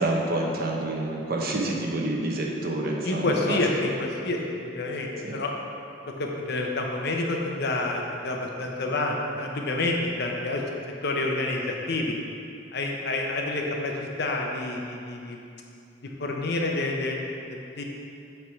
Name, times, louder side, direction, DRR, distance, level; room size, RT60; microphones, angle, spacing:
voice 1, 0.0-3.8 5.2-5.4, right 2 dB, 55° right, -1 dB, 0.9 m, -28 dB
voice 2, 3.0-5.5 6.2-10.6 11.0-12.1 12.7-15.4 16.2-17.2 17.5-17.8, left 2 dB, 60° left, 0 dB, 0.8 m, -28 dB
8.6 x 3.4 x 4.5 m, 2.5 s
head